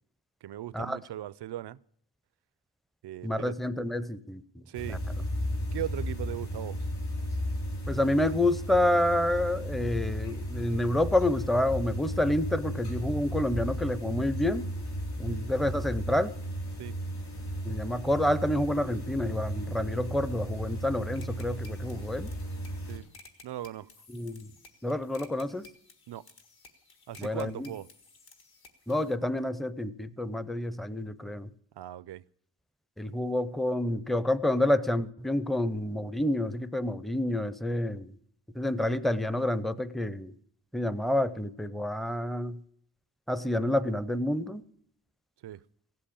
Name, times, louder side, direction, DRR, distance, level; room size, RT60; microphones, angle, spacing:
voice 1, 0.4-1.8 3.0-3.6 4.7-5.0 5.7-6.9 15.3-15.5 16.8-17.0 22.9-23.1 23.4-23.9 26.1-26.3 27.1-27.9 31.8-32.2 45.4-45.6, right 12 dB, 90° right, 0.5 m, -38 dB
voice 2, 3.2-5.0 7.9-14.7 15.2-16.3 17.6-22.3 24.1-24.5 24.8-25.7 27.2-27.7 28.9-31.5 33.0-38.1 38.5-40.3 40.7-42.6 43.3-44.6, left 1 dB, ahead, 0.5 m, -28 dB
sound 1, 4.7-23.0, equal, 90° left, 3.4 m, -35 dB
sound 2, 21.1-29.1, left 3 dB, 65° left, 1.9 m, -55 dB
16.0 x 7.7 x 8.5 m
wide cardioid pair, 130°, 39 cm